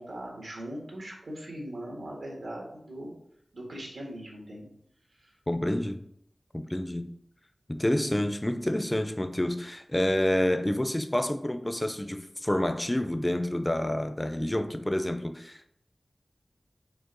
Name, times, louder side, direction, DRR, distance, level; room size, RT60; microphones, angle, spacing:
voice 1, 0.0-3.1 3.5-4.7 5.1-5.3, right 1 dB, 90° right, -2 dB, 1.8 m, -40 dB
voice 2, 5.5-6.0 6.5-7.1 7.7-15.7, left 1 dB, 15° left, 8 dB, 0.5 m, -28 dB
5.3 x 4.6 x 3.9 m, 0.75 s
wide cardioid pair, 75°, 0 cm